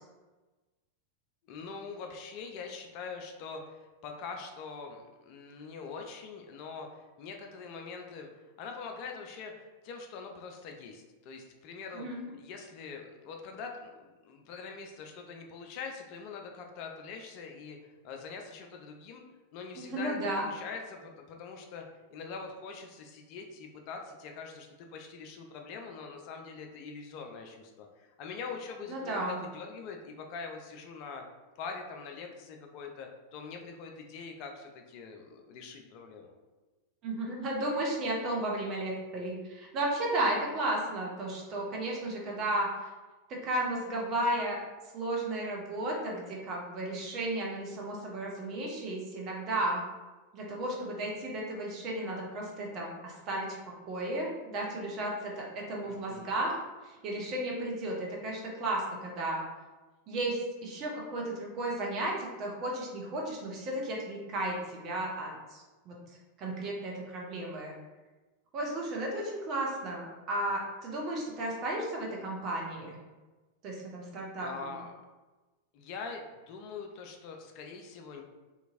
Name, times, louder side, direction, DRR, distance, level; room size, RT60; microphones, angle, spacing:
voice 1, 1.5-8.3 8.6-12.1 12.4-17.8 18.0-19.2 19.5-21.8 22.1-31.2 31.6-36.4 55.8-56.3 74.4-74.9 75.7-78.2, left 5 dB, 45° left, 3 dB, 0.3 m, -43 dB
voice 2, 19.8-20.4 28.9-29.4 37.0-42.7 43.3-44.6 44.9-49.8 50.3-53.6 53.9-56.6 56.8-59.4 60.1-65.9 66.4-67.7 68.5-73.0 73.6-74.7, right 1 dB, 35° right, -2 dB, 0.7 m, -34 dB
2.9 x 2.6 x 2.5 m, 1.2 s
figure-of-eight pair, 90°, 0 cm